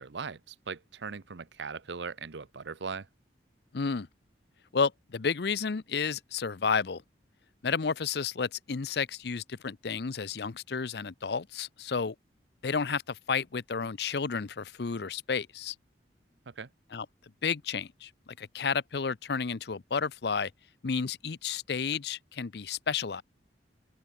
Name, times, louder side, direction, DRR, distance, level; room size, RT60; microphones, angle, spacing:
voice 1, 0.0-3.1 16.5-16.7, right 5 dB, 70° right, 0.7 m, -39 dB
voice 2, 3.7-4.1 4.7-7.0 7.6-12.1 12.6-15.7 16.9-17.1 17.4-18.1 18.4-20.5 20.8-23.2, left 5 dB, 60° left, 0.6 m, -31 dB
open air
head